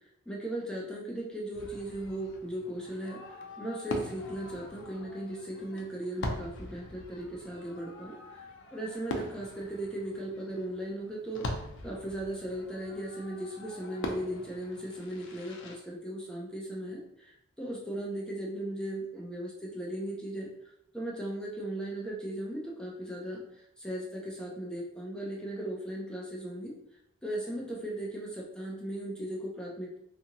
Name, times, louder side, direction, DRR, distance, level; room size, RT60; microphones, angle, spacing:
voice 1, 0.3-20.5 20.9-26.7 27.2-30.0, right 1 dB, 5° left, -3 dB, 0.4 m, -37 dB
Fireworks, 1.5-15.8, left 1 dB, 65° left, 0.4 m, -42 dB
2.7 x 2.5 x 2.8 m, 0.75 s
head